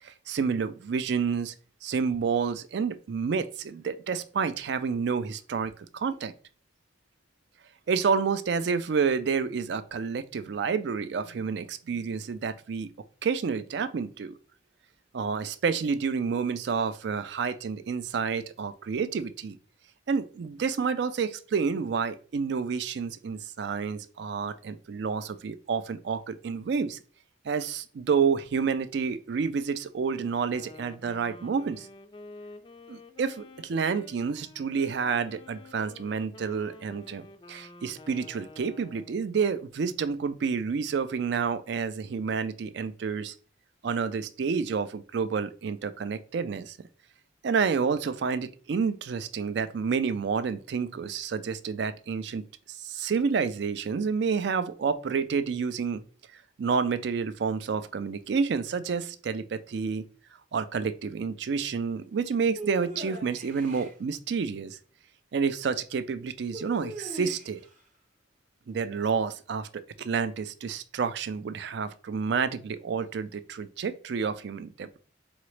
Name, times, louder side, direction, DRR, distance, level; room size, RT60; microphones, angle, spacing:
voice 1, 0.0-1.6 1.8-6.3 7.9-12.9 13.2-14.4 15.1-19.6 20.1-27.0 27.4-31.9 32.9-43.3 43.8-46.8 47.4-56.0 56.6-60.0 60.5-64.8 65.3-67.6 68.7-75.0, right 5 dB, 60° right, 13 dB, 0.3 m, -29 dB
Wind instrument woodwind instrument, 30.4-39.3, left 2 dB, 25° left, 0.3 m, -50 dB
sound 1, 62.6-63.9 66.5-67.7, right 1 dB, 35° right, 0.8 m, -39 dB
3.9 x 3.8 x 3.2 m, 0.40 s
head